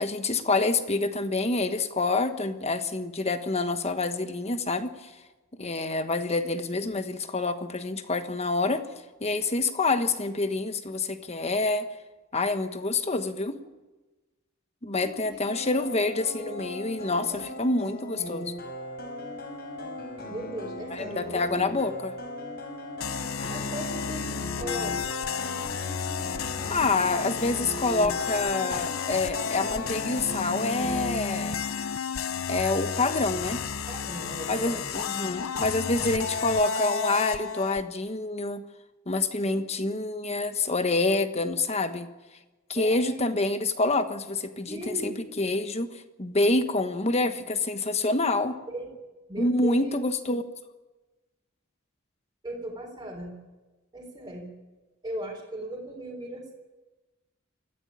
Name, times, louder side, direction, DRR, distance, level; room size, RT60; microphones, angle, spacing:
voice 1, 0.0-5.1 5.6-8.8 9.2-11.8 12.3-13.6 14.8-18.5 20.9-22.1 26.7-31.6 32.5-33.6 34.5-38.6 39.1-42.1 42.7-45.9 46.2-48.6 49.4-50.4, left 3 dB, 30° left, 9 dB, 1.3 m, -27 dB
voice 2, 15.0-15.5 16.4-17.0 17.2-17.5 20.3-21.6 23.5-25.1 33.9-34.9 35.5-35.6 39.5-39.9 42.7-43.2 44.7-45.2 48.7-48.9 49.3-50.0 52.4-53.3 53.9-54.5 55.0-56.5, right 1 dB, 20° right, -1 dB, 3.8 m, -38 dB
sound 1, 15.4-31.1, left 1 dB, 55° left, 4.4 m, -38 dB
sound 2, 23.0-37.8, left 6 dB, 80° left, 0.7 m, -32 dB
20.0 x 14.5 x 8.8 m, 1.2 s
head